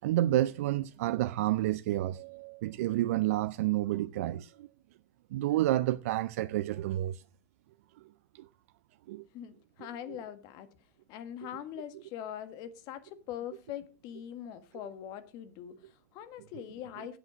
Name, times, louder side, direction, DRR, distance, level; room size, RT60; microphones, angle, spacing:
voice 1, 0.0-4.7 5.3-7.2 8.3-8.4 9.1-9.3 10.1-10.2, right 14 dB, 70° right, 0.4 m, -30 dB
voice 2, 9.3-10.7 11.1-17.2, left 10 dB, 55° left, 1.5 m, -42 dB
8.3 x 8.0 x 6.1 m
hypercardioid pair, 95°, 8 cm